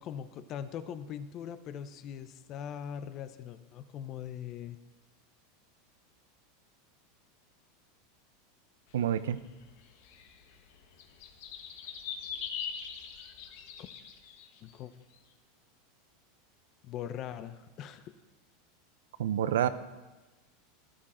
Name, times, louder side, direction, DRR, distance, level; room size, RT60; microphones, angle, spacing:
voice 1, 0.0-4.8 14.6-14.9 16.8-18.1, left 9 dB, 45° left, 11 dB, 0.8 m, -41 dB
voice 2, 8.9-9.4 19.2-19.7, right 10 dB, 85° right, 14 dB, 0.6 m, -28 dB
sound 1, 9.0-14.6, left 7 dB, 70° left, 1.4 m, -42 dB
13.0 x 12.0 x 4.4 m, 1.2 s
hypercardioid pair, 115°, 0 cm